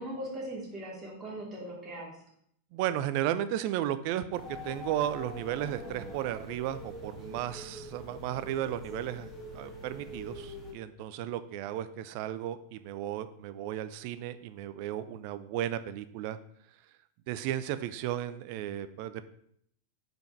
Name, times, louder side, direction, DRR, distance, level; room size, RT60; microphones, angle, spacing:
voice 1, 0.0-2.1, right 1 dB, 25° right, -5 dB, 2.7 m, -39 dB
voice 2, 2.7-16.4 17.3-19.2, right 12 dB, 45° right, 13 dB, 0.4 m, -34 dB
sound 1, 4.3-10.7, left 1 dB, 5° left, 1.7 m, -44 dB
5.1 x 4.6 x 4.5 m, 0.69 s
figure-of-eight pair, 90°, 0 cm